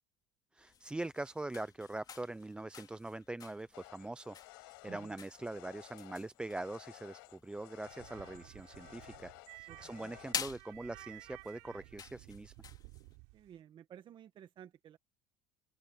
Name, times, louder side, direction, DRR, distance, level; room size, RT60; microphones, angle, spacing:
voice 1, 0.5-12.5, right 2 dB, 10° right, 0.5 m, -43 dB
sound 1, 0.6-13.2, left 7 dB, 35° left, 3.8 m, -49 dB
sound 2, 3.7-10.3, left 25 dB, 85° left, 7.6 m, -56 dB
voice 2, 4.9-5.2 9.7-10.1 13.3-15.0, right 9 dB, 40° right, 1.5 m, -54 dB
sound 3, 7.8-13.6, right 29 dB, 75° right, 7.1 m, -54 dB
open air
supercardioid pair, 115°, 12 cm